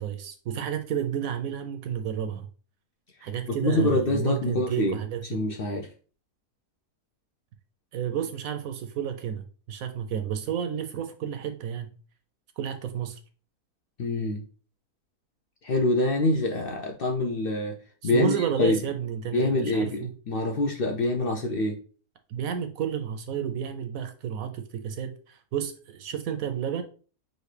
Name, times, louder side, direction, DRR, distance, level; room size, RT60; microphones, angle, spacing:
voice 1, 0.0-2.5 3.2-5.4 7.9-11.9 12.6-13.2 18.0-20.1 22.3-26.8, right 8 dB, 70° right, 7 dB, 0.9 m, -31 dB
voice 2, 3.6-5.0 5.3-5.9 14.0-14.4 15.6-17.8 18.0-18.8 19.3-21.8, left 2 dB, 80° left, 2 dB, 0.5 m, -25 dB
6.3 x 2.6 x 3.2 m, 0.39 s
omnidirectional pair, 1.6 m